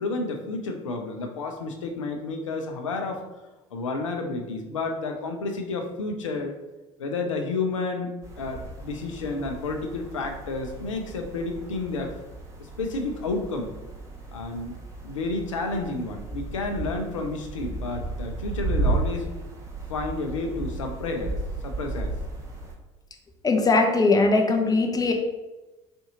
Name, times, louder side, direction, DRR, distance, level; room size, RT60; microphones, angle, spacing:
voice 1, 0.0-3.2 3.7-6.5 7.0-12.2 12.6-13.8 14.3-14.7 15.0-19.3 19.9-21.4 21.6-22.2, left 3 dB, 85° left, 4 dB, 0.6 m, -31 dB
sound 1, 8.2-22.7, right 2 dB, 20° right, 1.0 m, -34 dB
voice 2, 23.4-25.1, left 3 dB, 25° left, 2 dB, 0.8 m, -20 dB
4.3 x 2.7 x 3.7 m, 1.1 s
figure-of-eight pair, 60°, 16 cm